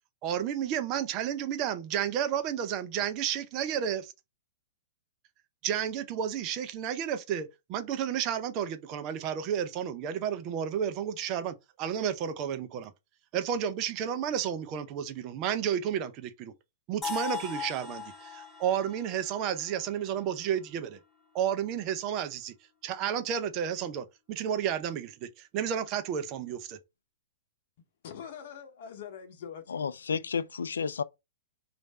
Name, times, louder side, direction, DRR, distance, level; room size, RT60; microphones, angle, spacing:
voice 1, 0.2-4.1 5.6-12.9 13.3-16.5 16.9-21.0 21.3-22.5 22.8-26.8, right 9 dB, 40° right, 0.5 m, -32 dB
sound 1, 17.0-20.9, left 6 dB, 15° left, 1.1 m, -39 dB
voice 2, 27.8-29.8, left 8 dB, 55° left, 0.8 m, -44 dB
voice 3, 29.7-31.0, left 6 dB, 75° left, 0.3 m, -31 dB
3.2 x 2.5 x 4.1 m
hypercardioid pair, 110°, 0 cm